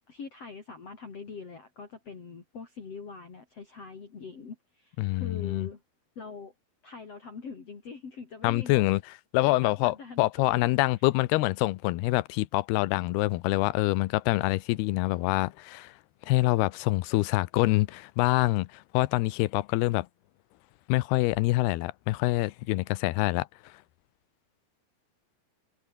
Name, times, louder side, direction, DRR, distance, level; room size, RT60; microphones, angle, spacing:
voice 1, 0.1-5.8 6.2-6.5 6.8-8.8 9.4-10.7, left 5 dB, 40° left, 4.3 m, -43 dB
voice 2, 5.0-5.7 8.4-9.0 9.3-15.9 16.3-20.1 20.9-23.5, left 19 dB, 85° left, 2.7 m, -26 dB
omnidirectional pair, 4.5 m